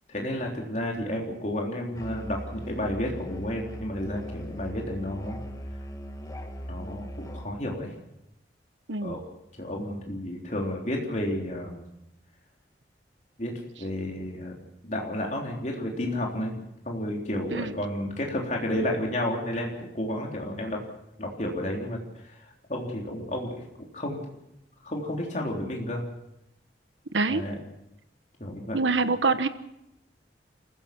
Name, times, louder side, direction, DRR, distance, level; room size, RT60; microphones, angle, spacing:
voice 1, 0.1-5.4 6.7-7.9 9.0-9.2 9.6-11.8 13.4-13.5 13.8-14.6 14.8-16.5 16.9-20.8 21.2-22.0 22.2-23.5 23.9-24.2 24.8-26.0 27.3-27.6 28.4-28.8, left 1 dB, 40° left, -1 dB, 3.7 m, -31 dB
Musical instrument, 1.9-7.5, equal, 20° left, 1.7 m, -39 dB
voice 2, 27.1-27.4 28.7-29.5, right 3 dB, 90° right, 12 dB, 1.2 m, -25 dB
28.0 x 15.5 x 6.1 m, 0.83 s
head